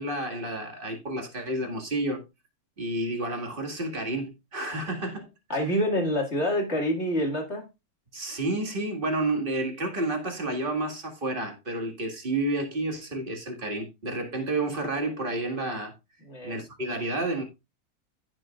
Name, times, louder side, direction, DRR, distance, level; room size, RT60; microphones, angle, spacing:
voice 1, 0.0-2.2 2.8-5.3 8.1-15.9 16.4-17.4, right 2 dB, 35° right, 2.1 m, -30 dB
voice 2, 5.5-7.6 16.2-16.6, equal, 45° left, 2.5 m, -27 dB
15.5 x 6.2 x 2.4 m
omnidirectional pair, 1.6 m